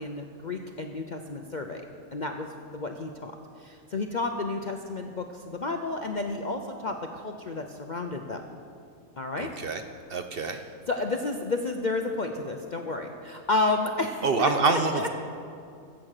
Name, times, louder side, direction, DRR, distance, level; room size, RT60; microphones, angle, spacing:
voice 1, 0.0-1.8 2.1-3.3 3.6-8.4 9.2-9.5 10.4-10.6 10.9-15.1, left 3 dB, 50° left, 4 dB, 0.5 m, -31 dB
voice 2, 9.4-9.8 10.1-10.6 14.2-15.1, right 4 dB, 55° right, 7 dB, 0.7 m, -26 dB
15.0 x 7.5 x 6.5 m, 2.4 s
omnidirectional pair, 1.5 m